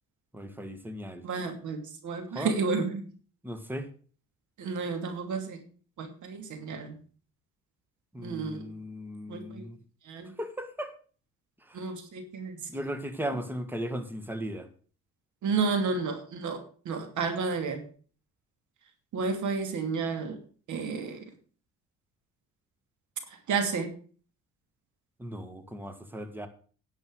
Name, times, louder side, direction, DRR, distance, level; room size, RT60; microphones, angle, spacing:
voice 1, 0.3-1.2 2.3-2.6 3.4-3.9 8.1-9.8 10.4-10.9 11.6-11.8 12.7-14.7 25.2-26.5, equal, 5° right, 9 dB, 1.8 m, -37 dB
voice 2, 1.2-3.0 4.6-5.7 6.0-7.0 8.2-8.6 9.3-9.6 10.1-10.3 11.7-12.6 15.4-17.9 19.1-20.4 20.7-21.2 23.5-23.9, right 4 dB, 75° right, 7 dB, 2.7 m, -31 dB
10.5 x 7.9 x 6.4 m, 0.41 s
cardioid pair, 90°, 30 cm